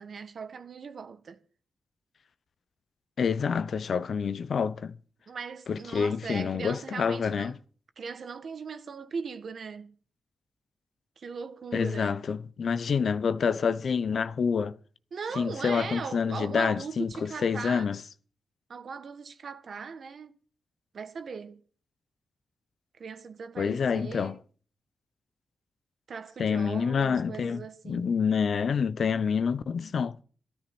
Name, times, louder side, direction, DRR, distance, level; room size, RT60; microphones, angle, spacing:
voice 1, 0.0-1.4 5.3-7.5 8.0-9.9 11.2-12.2 15.1-17.9 18.7-20.3 20.9-21.6 23.0-24.4 26.1-28.1, right 5 dB, 60° right, 1.5 m, -39 dB
voice 2, 3.2-5.0 5.7-7.5 11.7-14.8 15.4-18.0 23.6-24.4 26.4-30.2, left 6 dB, 65° left, 0.7 m, -27 dB
15.0 x 13.0 x 6.1 m
wide cardioid pair, 105°, 0 cm